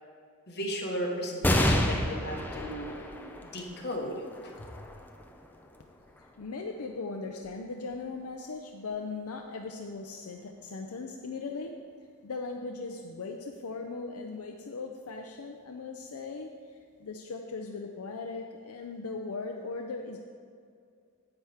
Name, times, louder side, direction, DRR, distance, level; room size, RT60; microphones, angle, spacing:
voice 1, 0.5-2.9 3.4-4.5, equal, 50° left, -1 dB, 1.4 m, -35 dB
sound 1, 1.4-8.3 8.9-9.0 10.2-10.7, left 1 dB, 10° left, 0.5 m, -32 dB
voice 2, 6.2-11.8 12.2-20.2, left 4 dB, 75° left, 2 dB, 0.5 m, -39 dB
10.0 x 7.9 x 3.5 m, 2.2 s
head